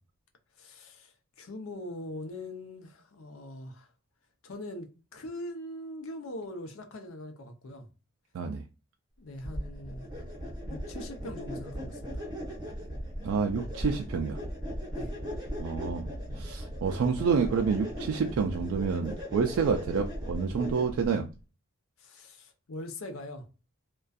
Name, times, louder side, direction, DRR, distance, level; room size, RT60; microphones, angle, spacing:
voice 1, 0.6-3.9 4.4-7.9 9.2-12.3 14.9-15.1 22.0-23.5, left 1 dB, 75° left, 0.6 m, -42 dB
sound 1, 9.4-21.1, equal, 20° right, 0.8 m, -38 dB
voice 2, 13.2-14.4 15.6-16.1 16.4-21.3, right 5 dB, 70° right, 0.3 m, -28 dB
2.5 x 2.2 x 2.3 m
head